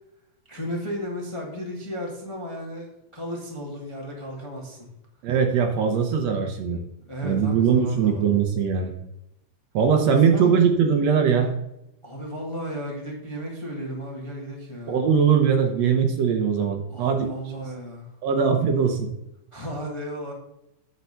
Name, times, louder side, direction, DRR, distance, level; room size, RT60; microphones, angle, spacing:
voice 1, 0.5-4.9 7.1-8.5 10.3-10.7 12.0-15.0 16.9-18.1 19.5-20.3, equal, 15° left, -1 dB, 1.2 m, -34 dB
voice 2, 5.2-6.8 7.2-8.9 9.7-11.5 14.9-17.3 18.2-19.1, right 6 dB, 70° right, 5 dB, 2.0 m, -21 dB
8.7 x 4.9 x 6.8 m, 0.84 s
omnidirectional pair, 3.4 m